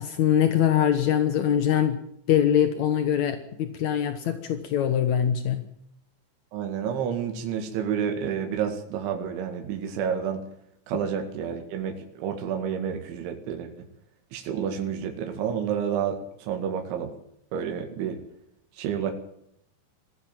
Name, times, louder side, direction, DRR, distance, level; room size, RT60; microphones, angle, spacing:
voice 1, 0.0-2.0 2.3-5.6, left 9 dB, 75° left, 9 dB, 1.7 m, -23 dB
voice 2, 6.5-10.4 10.9-13.7 14.3-17.1 17.5-18.2 18.8-19.1, right 8 dB, 80° right, 4 dB, 4.4 m, -29 dB
21.0 x 16.0 x 9.1 m, 0.73 s
omnidirectional pair, 5.4 m